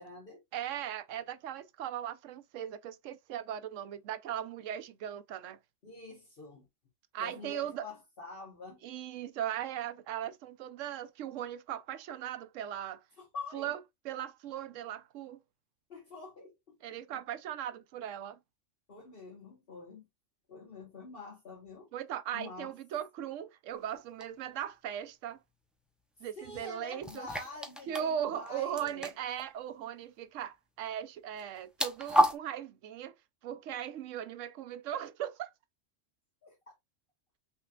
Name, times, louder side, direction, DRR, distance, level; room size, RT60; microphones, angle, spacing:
voice 1, 0.0-0.4 5.8-6.7 7.2-8.8 13.2-13.8 15.9-17.2 18.9-20.0 20.5-21.9 22.3-22.7 26.2-29.1 36.4-36.7, left 3 dB, 50° left, 1.4 m, -47 dB
voice 2, 0.5-5.6 7.1-7.8 8.8-13.0 13.5-15.4 16.8-18.4 21.9-25.4 26.2-27.3 27.9-33.1 33.4-35.5, right 10 dB, 85° right, 1.0 m, -38 dB
sound 1, 24.2-24.3 27.0-28.1 28.4-28.5 28.8-29.4 31.4-32.3, equal, ahead, 0.4 m, -30 dB
5.7 x 3.3 x 2.3 m
omnidirectional pair, 1.3 m